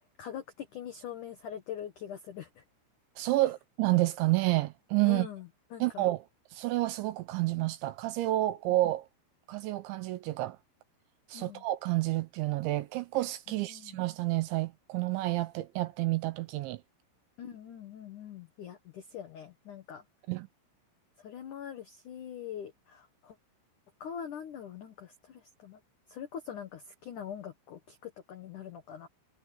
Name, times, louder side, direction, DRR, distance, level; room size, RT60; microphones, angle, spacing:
voice 1, 0.2-2.6 5.0-6.1 11.3-11.6 13.5-14.0 17.4-20.0 21.2-23.4 24.0-25.8 26.1-29.1, left 9 dB, 90° left, 1.8 m, -43 dB
voice 2, 3.2-5.3 5.8-6.2 6.5-9.1 9.5-10.6 11.3-16.8 20.3-20.5, right 18 dB, 80° right, 2.9 m, -29 dB
omnidirectional pair, 5.8 m